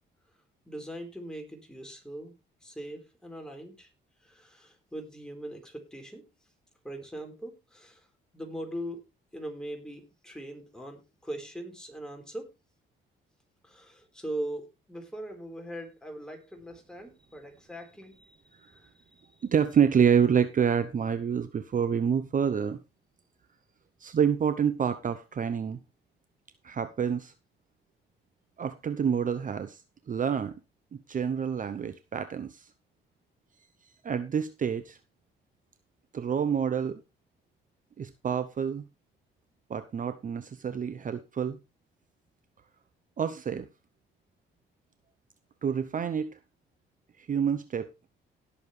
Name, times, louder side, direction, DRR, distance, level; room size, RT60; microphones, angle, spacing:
voice 1, 0.7-2.3 2.6-3.9 4.2-6.2 6.8-8.1 8.3-9.0 9.3-12.5 13.6-19.4, right 1 dB, 5° left, 4.4 m, -41 dB
voice 2, 19.4-22.8 24.0-25.8 26.6-27.3 28.6-29.8 30.1-30.6 30.9-32.7 34.0-35.0 36.1-37.0 38.0-38.8 39.7-41.6 43.2-43.7 45.6-46.4 47.2-47.9, right 7 dB, 40° right, 0.8 m, -27 dB
18.0 x 7.1 x 3.3 m
cardioid pair, 90°, 20 cm